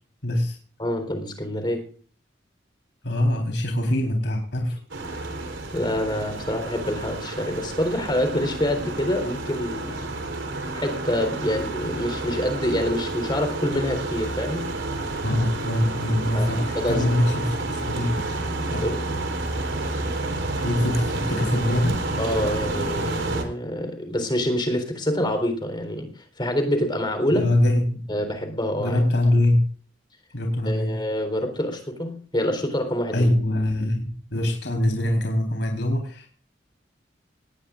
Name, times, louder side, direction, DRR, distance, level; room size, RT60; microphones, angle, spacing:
voice 1, 0.2-0.6 3.0-4.8 15.2-18.3 18.7-18.9 20.6-22.0 27.3-28.0 28.8-29.7 30.3-30.9 33.1-36.3, left 1 dB, 70° left, 2 dB, 4.1 m, -23 dB
voice 2, 0.8-1.9 5.7-10.1 10.7-14.8 16.3-17.3 18.8-19.0 22.2-27.5 28.1-29.0 30.6-33.3, left 1 dB, 25° left, 6 dB, 3.9 m, -26 dB
sound 1, 4.9-23.4, right 2 dB, 90° right, 4.0 m, -30 dB
20.0 x 18.0 x 2.5 m, 0.43 s
head